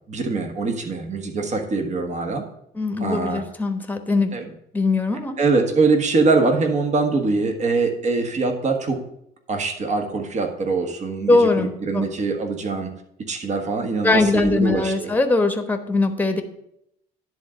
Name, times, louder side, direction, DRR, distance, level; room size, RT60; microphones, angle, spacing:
voice 1, 0.1-2.4 3.0-3.4 4.3-4.5 5.4-9.0 9.5-12.9 13.3-15.1, right 3 dB, 45° right, 4 dB, 1.6 m, -23 dB
voice 2, 2.7-4.3 4.7-5.4 11.3-12.0 14.0-16.4, left 3 dB, 10° left, 6 dB, 1.1 m, -21 dB
10.5 x 3.9 x 7.5 m, 0.77 s
cardioid pair, 110°, 17 cm